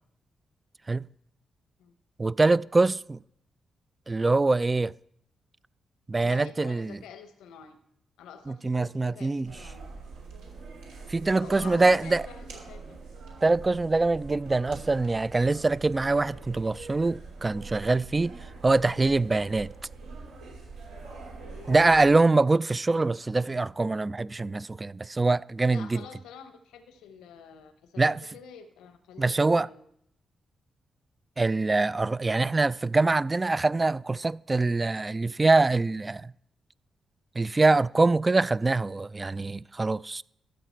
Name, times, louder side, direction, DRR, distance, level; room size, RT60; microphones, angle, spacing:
voice 1, 2.2-3.2 4.1-4.9 6.1-7.0 8.5-9.6 11.1-12.2 13.4-18.4 18.6-19.7 21.7-26.0 28.0-28.2 29.2-29.7 31.4-36.3 37.4-40.2, right 3 dB, 30° right, 0.3 m, -24 dB
voice 2, 6.2-7.8 8.2-9.8 11.4-13.0 21.4-22.3 25.7-29.8, left 7 dB, 85° left, 0.8 m, -48 dB
sound 1, 9.4-22.1, right 3 dB, 85° right, 2.9 m, -44 dB
13.0 x 7.7 x 4.4 m
supercardioid pair, 45°, 0 cm